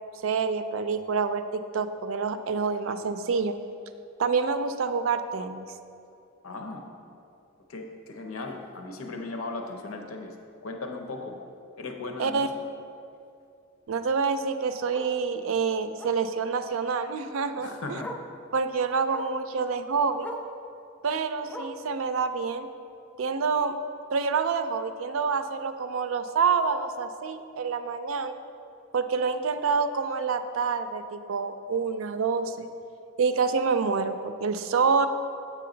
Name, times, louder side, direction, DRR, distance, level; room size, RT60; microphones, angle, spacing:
voice 1, 0.2-3.6 4.2-5.6 12.2-12.5 13.9-17.7 18.5-20.3 21.0-22.7 23.2-23.8 24.1-28.4 28.9-32.6 33.2-35.1, right 5 dB, 70° right, 10 dB, 0.4 m, -27 dB
voice 2, 6.4-6.8 7.7-10.3 10.6-11.4 11.8-12.4 17.6-18.1, left 3 dB, 85° left, 4 dB, 0.8 m, -37 dB
Bark, 8.5-8.6 9.0-9.2 9.5-9.6 9.9-10.0 11.4-11.5 14.0-14.1 14.9-15.2 16.0-16.3 17.5-17.6 18.0-18.3 19.1-19.4 20.2-20.5 21.5-21.9 22.9-23.0, equal, 10° left, 0.4 m, -40 dB
7.6 x 6.2 x 3.9 m, 2.6 s
head